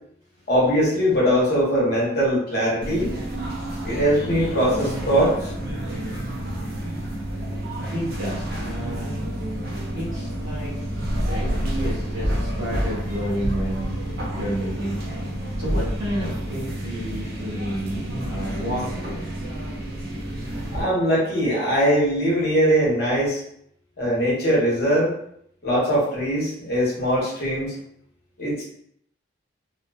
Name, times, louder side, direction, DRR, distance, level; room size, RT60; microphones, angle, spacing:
voice 1, 0.5-3.1 3.8-5.5 20.7-23.4 24.0-25.1 25.6-27.7 28.4-28.6, equal, 50° left, -5 dB, 0.9 m, -21 dB
sound 1, 2.8-20.8, equal, 50° right, 0.5 m, -29 dB
voice 2, 7.9-9.1 9.9-10.7 11.2-15.0 15.6-19.2, equal, 75° right, -7 dB, 1.3 m, -31 dB
2.5 x 2.1 x 2.3 m, 0.70 s
head